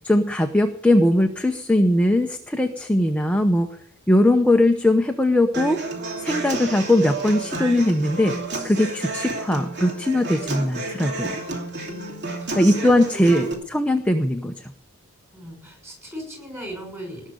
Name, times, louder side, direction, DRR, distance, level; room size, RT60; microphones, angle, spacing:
voice 1, 0.0-3.7 4.1-5.8 6.2-8.3 8.6-11.4 12.6-14.7, left 1 dB, 5° left, 4 dB, 0.8 m, -20 dB
Human voice / Acoustic guitar, 5.5-13.5, right 2 dB, 50° right, 2.8 m, -31 dB
voice 2, 11.8-13.6 15.3-17.3, equal, 10° right, 1 dB, 6.5 m, -38 dB
19.0 x 6.6 x 8.4 m, 0.73 s
head